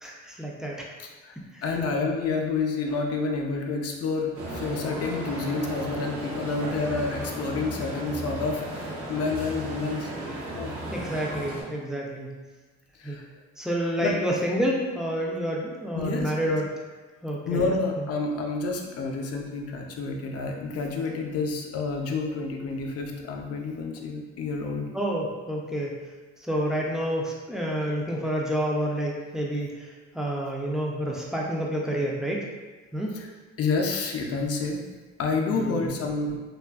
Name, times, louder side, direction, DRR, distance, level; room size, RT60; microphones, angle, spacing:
voice 1, 0.0-0.9 1.5-1.6 10.9-12.3 13.0-13.2 13.6-16.7 17.2-17.7 18.0-18.1 24.9-26.0 26.4-32.5 32.9-33.2 35.5-36.0, equal, ahead, -3 dB, 0.4 m, -29 dB
voice 2, 1.0-1.3 1.6-10.1 10.5-10.8 13.0-13.2 14.0-14.1 15.9-16.5 17.5-24.9 33.1-33.3 33.6-34.8 35.2-36.4, left 4 dB, 55° left, 2 dB, 0.5 m, -29 dB
sound 1, 4.3-11.6, right 1 dB, 45° right, 0.7 m, -35 dB
2.6 x 2.4 x 2.3 m, 1.3 s
cardioid pair, 90°, 30 cm